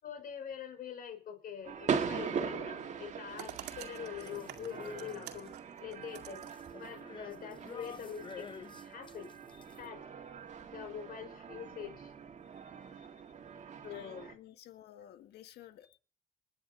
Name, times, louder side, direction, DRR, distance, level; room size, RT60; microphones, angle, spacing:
voice 1, 0.0-5.6 5.8-6.4 6.8-8.5 8.8-9.3 9.8-10.0 10.7-12.1 13.8-14.3, left 8 dB, 60° left, 7 dB, 5.6 m, -44 dB
sound 1, 1.6-14.3, right 6 dB, 45° right, 1.9 m, -41 dB
sound 2, 3.3-6.7 7.9-8.0 9.1-9.2, right 12 dB, 85° right, 2.1 m, -49 dB
sound 3, 4.2-5.5 5.9-9.9, left 6 dB, 30° left, 0.8 m, -51 dB
voice 2, 13.9-16.0, left 12 dB, 80° left, 8 dB, 1.7 m, -54 dB
20.5 x 9.8 x 5.3 m, 0.40 s
cardioid pair, 110°, 17 cm